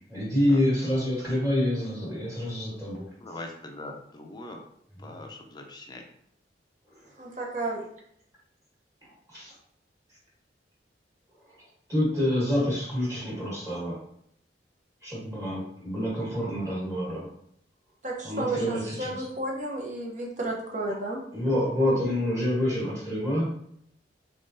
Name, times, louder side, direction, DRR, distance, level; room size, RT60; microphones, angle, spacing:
voice 1, 0.1-3.1 9.3-9.5 11.9-14.0 15.0-17.3 18.2-19.2 21.3-23.5, left 1 dB, 20° right, -6 dB, 1.4 m, -27 dB
voice 2, 3.2-4.6 5.0-6.0, left 2 dB, 25° left, 2 dB, 0.5 m, -41 dB
voice 3, 7.2-7.8 18.0-21.2, right 2 dB, 45° right, 0 dB, 0.8 m, -32 dB
3.6 x 3.6 x 2.6 m, 0.70 s
head